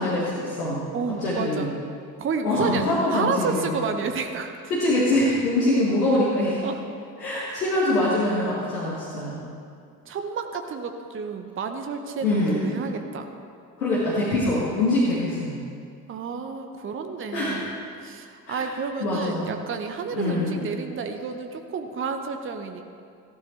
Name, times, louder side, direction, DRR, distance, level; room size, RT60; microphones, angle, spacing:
voice 1, 0.0-0.8 1.2-1.7 2.4-3.8 4.7-6.6 7.2-9.4 12.2-12.8 13.8-15.5 17.3-17.6 18.5-18.7 19.0-19.5 20.1-20.6, left 1 dB, 75° left, -7 dB, 2.0 m, -24 dB
voice 2, 0.9-1.7 2.2-4.5 6.6-6.8 7.5-7.6 10.1-13.3 16.1-22.8, right 5 dB, 25° right, 6 dB, 0.9 m, -31 dB
15.0 x 13.0 x 3.3 m, 2.4 s
figure-of-eight pair, 55°, 47 cm